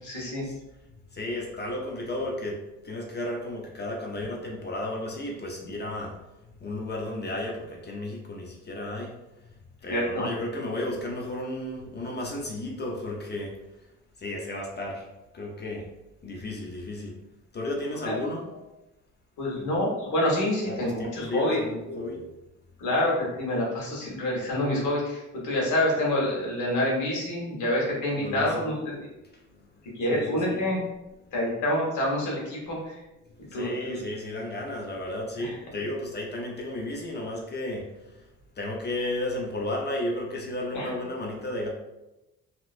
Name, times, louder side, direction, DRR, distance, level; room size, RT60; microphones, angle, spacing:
voice 1, 0.0-0.4 9.9-10.3 18.0-18.2 19.4-21.6 22.8-29.0 29.9-30.8 31.3-33.0 33.5-34.0 35.4-35.5 40.7-40.9, left 1 dB, 75° left, -3 dB, 1.4 m, -27 dB
voice 2, 1.1-6.2 6.6-9.2 9.8-13.6 14.2-15.1 15.3-15.9 16.2-17.2 17.5-18.5 19.6-19.7 20.6-22.3 28.2-28.7 29.2-29.7 30.1-30.7 33.5-38.3 38.6-41.7, left 1 dB, 35° left, -1 dB, 0.7 m, -33 dB
3.0 x 2.9 x 2.5 m, 0.97 s
cardioid pair, 90°, 30 cm